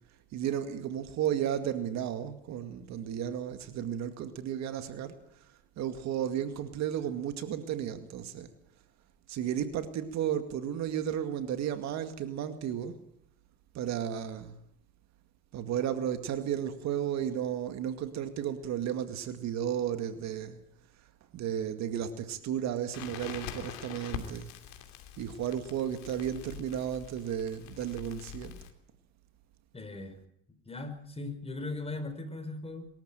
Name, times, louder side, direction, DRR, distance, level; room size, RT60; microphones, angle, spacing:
voice 1, 0.3-5.2 5.8-8.5 9.3-13.0 13.7-14.6 15.5-20.6 21.3-24.5 25.2-28.6, right 9 dB, 65° right, 2.1 m, -33 dB
Crackle, 22.9-28.7, left 10 dB, 75° left, 2.8 m, -44 dB
voice 2, 29.7-30.2 30.6-32.9, left 2 dB, 20° left, 5.0 m, -38 dB
23.0 x 13.5 x 9.0 m
supercardioid pair, 80°, 29 cm